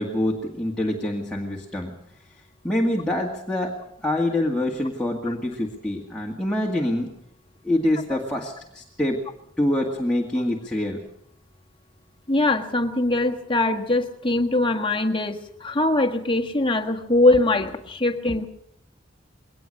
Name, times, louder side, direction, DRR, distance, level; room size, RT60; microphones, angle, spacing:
voice 1, 0.0-1.9 2.6-7.1 7.6-9.2 9.6-11.0, left 1 dB, 5° left, -2 dB, 2.0 m, -25 dB
voice 2, 12.3-18.5, left 2 dB, 25° left, 4 dB, 1.6 m, -22 dB
22.0 x 19.0 x 6.5 m, 0.73 s
head